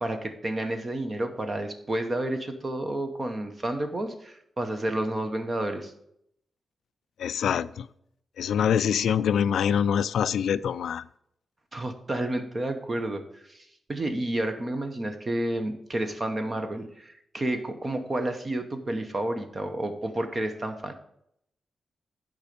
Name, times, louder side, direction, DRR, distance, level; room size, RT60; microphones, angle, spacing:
voice 1, 0.0-5.9 11.7-20.9, right 1 dB, 25° right, 0.8 m, -30 dB
voice 2, 7.2-7.9 8.4-11.0, left 8 dB, 90° left, 0.3 m, -25 dB
9.5 x 5.2 x 5.1 m
wide cardioid pair, 175°, 0 cm